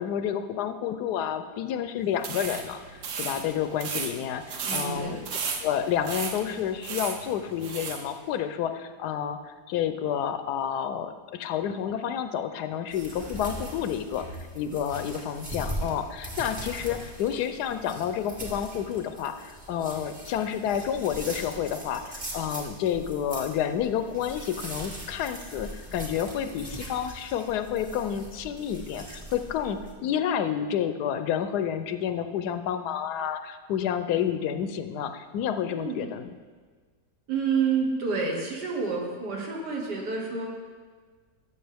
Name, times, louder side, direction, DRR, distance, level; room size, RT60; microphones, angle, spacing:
voice 1, 0.0-5.2 5.6-14.3 14.5-36.3, left 9 dB, 75° left, 9 dB, 1.1 m, -30 dB
sound 1, 2.2-8.1, right 5 dB, 55° right, 1.0 m, -35 dB
voice 2, 4.6-5.2 35.7-36.1 37.3-40.5, right 5 dB, 80° right, 0 dB, 2.0 m, -29 dB
sound 2, 12.9-29.9, right 1 dB, 30° right, 1.6 m, -40 dB
13.5 x 6.8 x 3.4 m, 1.5 s
omnidirectional pair, 1.8 m